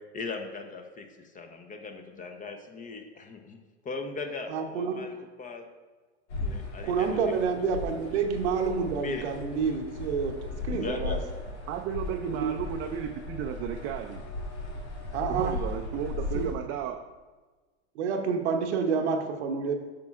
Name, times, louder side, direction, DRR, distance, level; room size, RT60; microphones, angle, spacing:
voice 1, 0.1-3.6 3.8-5.7 6.4-7.4 9.0-9.3 10.7-11.2, left 4 dB, 25° left, 6 dB, 0.7 m, -38 dB
voice 2, 4.5-5.0 6.8-11.2 12.3-12.5 15.1-15.6 16.3-16.5 17.9-19.7, right 5 dB, 80° right, 5 dB, 0.9 m, -28 dB
sound 1, 6.3-16.5, left 2 dB, 85° left, 1.5 m, -37 dB
voice 3, 11.7-14.3 15.3-17.0, right 9 dB, 40° right, 4 dB, 0.5 m, -34 dB
8.5 x 6.0 x 2.5 m, 1.3 s
hypercardioid pair, 105°, 33 cm